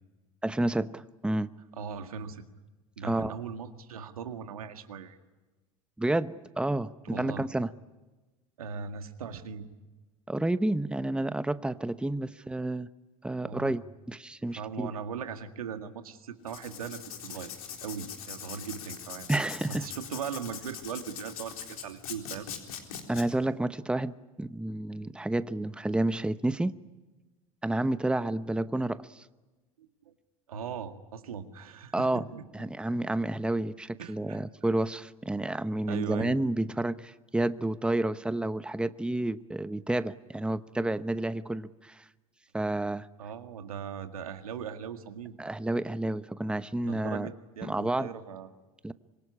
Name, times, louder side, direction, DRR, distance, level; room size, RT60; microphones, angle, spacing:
voice 1, 0.4-1.5 3.0-3.4 6.0-7.7 10.3-12.9 13.2-14.9 19.3-19.9 23.1-26.7 27.6-29.3 31.9-32.3 32.5-42.0 42.5-43.1 45.4-47.3 47.6-48.1 48.8-48.9, right 1 dB, 5° right, 13 dB, 1.0 m, -30 dB
voice 2, 1.8-2.4 3.0-5.2 7.0-7.4 8.6-9.7 13.4-13.7 14.5-17.5 17.8-19.3 19.7-22.5 29.8-30.1 30.5-32.4 34.0-34.4 35.9-36.4 43.2-45.4 46.8-48.5, right 7 dB, 85° right, 7 dB, 2.1 m, -39 dB
Writing, 16.4-23.2, left 8 dB, 85° left, 3.9 m, -42 dB
26.0 x 23.0 x 9.9 m, 1.2 s
hypercardioid pair, 80°, 18 cm